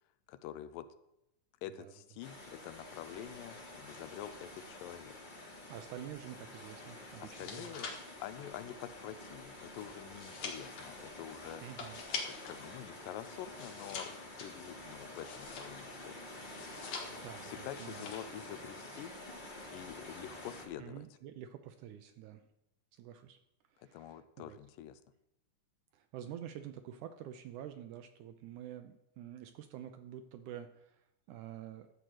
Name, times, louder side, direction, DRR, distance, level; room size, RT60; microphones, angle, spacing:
voice 1, 0.3-0.9 1.6-5.2 7.2-7.9 8.2-11.6 12.3-14.1 14.4-16.5 17.4-19.1 19.7-21.1 23.8-25.0, left 11 dB, 80° left, 13 dB, 2.2 m, -47 dB
sound 1, 2.2-20.7, left 1 dB, 35° left, 0.7 m, -49 dB
voice 2, 5.7-7.8 11.6-12.0 17.1-18.1 20.8-22.4 22.9-23.4 23.7-24.6 25.9-31.9, right 10 dB, 80° right, 8 dB, 1.9 m, -48 dB
sound 2, 7.1-12.6 13.0-16.0 16.5-17.4 17.7-18.4 18.7-19.0, left 5 dB, 60° left, 3.0 m, -45 dB
13.5 x 4.6 x 7.8 m, 0.87 s
omnidirectional pair, 4.0 m